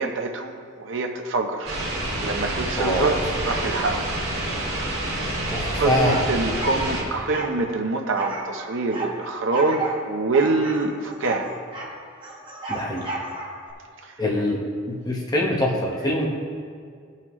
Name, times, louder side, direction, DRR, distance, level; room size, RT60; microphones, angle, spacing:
voice 1, 0.0-1.8 2.2-4.1 5.8-11.5 14.0-14.1, right 3 dB, 65° right, 4 dB, 0.7 m, -25 dB
sound 1, 1.6-7.0, right 1 dB, 50° right, 1.9 m, -28 dB
voice 2, 2.8-3.1 5.5-6.2 12.7-13.1 14.2-14.6 14.9-16.3, left 1 dB, 20° left, -2 dB, 1.0 m, -24 dB
sound 2, 6.6-7.6 8.1-9.1 9.5-10.0 10.3-11.9 12.2-13.7, right 3 dB, 25° right, 1.2 m, -32 dB
15.5 x 5.7 x 3.1 m, 2.1 s
head